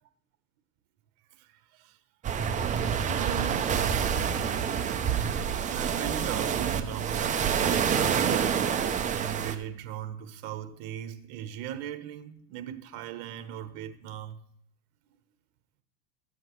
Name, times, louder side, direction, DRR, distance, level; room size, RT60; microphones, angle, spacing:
voice 1, 1.4-2.0 3.0-4.2 5.7-8.8 9.1-14.4, right 10 dB, 60° right, 1.1 m, -39 dB
sound 1, 2.2-9.5, right 7 dB, 20° right, 0.5 m, -27 dB
12.5 x 7.7 x 3.1 m
supercardioid pair, 125°, 45 cm